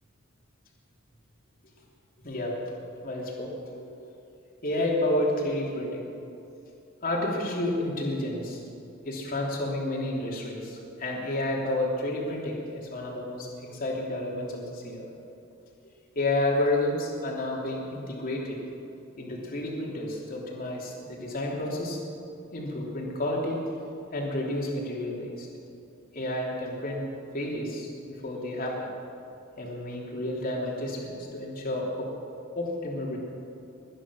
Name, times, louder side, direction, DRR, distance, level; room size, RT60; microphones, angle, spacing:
voice 1, 2.2-2.6 3.0-3.9 4.6-6.1 7.0-8.6 9.0-15.1 16.1-18.6 19.2-22.0 22.5-23.6 24.1-25.5 26.1-27.0 27.3-28.9 29.6-32.1 32.5-33.2, left 1 dB, 45° left, -3 dB, 3.2 m, -30 dB
22.0 x 10.0 x 6.3 m, 2.7 s
head